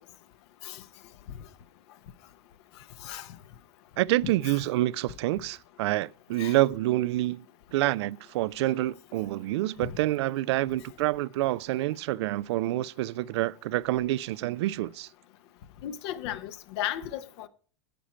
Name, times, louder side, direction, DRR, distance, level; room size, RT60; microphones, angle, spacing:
voice 1, 4.0-7.4 7.7-15.1, right 16 dB, 60° right, 0.4 m, -27 dB
voice 2, 15.8-17.5, left 11 dB, 60° left, 1.0 m, -35 dB
10.5 x 8.7 x 4.3 m
hypercardioid pair, 100°, 16 cm